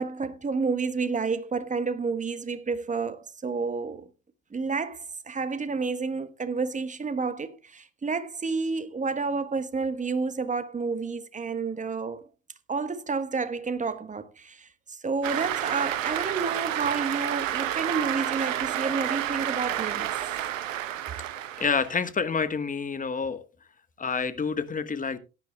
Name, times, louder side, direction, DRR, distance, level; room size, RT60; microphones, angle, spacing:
voice 1, 0.0-4.1 4.5-12.3 12.7-20.1, right 4 dB, 20° right, 1.3 m, -30 dB
Cheering / Applause, 15.2-22.1, right 12 dB, 80° right, 0.9 m, -30 dB
voice 2, 21.6-23.4 24.0-25.2, left 5 dB, 20° left, 1.4 m, -28 dB
17.5 x 10.5 x 2.3 m
hypercardioid pair, 70°, 38 cm